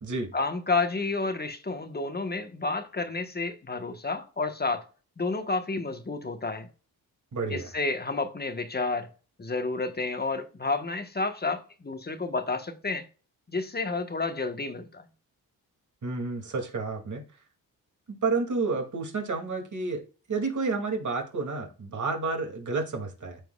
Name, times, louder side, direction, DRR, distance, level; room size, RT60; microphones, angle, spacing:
voice 1, 0.3-4.8 5.2-6.7 7.5-9.1 9.4-13.0 13.5-15.1, left 3 dB, 25° left, 1.4 m, -30 dB
voice 2, 7.3-7.7 16.0-17.2 18.1-20.0 20.3-23.4, right 4 dB, 50° right, 2.7 m, -30 dB
13.5 x 4.5 x 2.4 m
cardioid pair, 65°, 38 cm